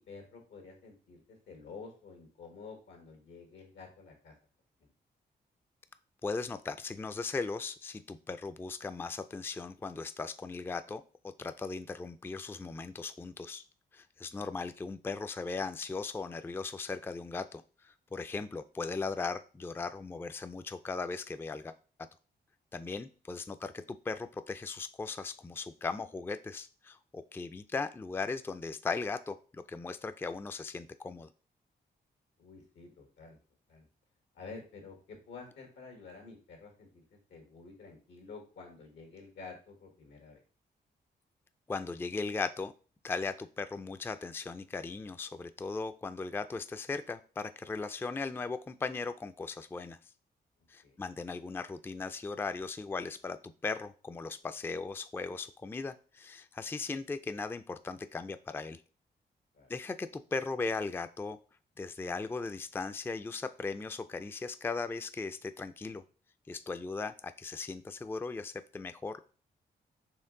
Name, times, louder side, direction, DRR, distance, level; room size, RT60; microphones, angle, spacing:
voice 1, 0.0-4.3 4.8-4.9 32.4-33.4 33.7-33.9 34.3-40.4 50.8-51.0 59.5-59.7, left 4 dB, 90° left, 4 dB, 1.4 m, -50 dB
voice 2, 6.2-13.6 13.9-21.7 22.7-31.3 41.7-42.7 43.0-50.0 50.7-58.8 59.7-61.4 61.8-66.0 66.5-69.3, left 4 dB, 10° left, 10 dB, 0.3 m, -38 dB
4.5 x 3.1 x 3.7 m, 0.38 s
cardioid pair, 65°, 18 cm